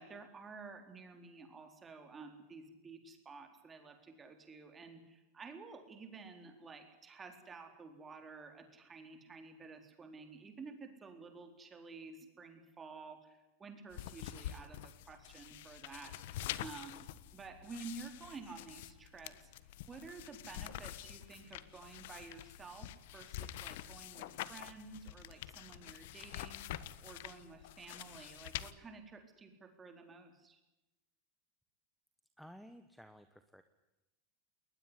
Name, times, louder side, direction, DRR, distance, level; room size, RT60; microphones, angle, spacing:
voice 1, 0.0-17.1 17.3-19.5 19.9-26.7 27.0-30.6, right 4 dB, 15° right, 6 dB, 4.0 m, -52 dB
sound 1, 13.9-28.7, left 13 dB, 70° left, 1.3 m, -47 dB
voice 2, 32.4-33.6, equal, ahead, 10 dB, 1.2 m, -55 dB
20.5 x 20.5 x 9.9 m, 0.97 s
supercardioid pair, 155°, 0 cm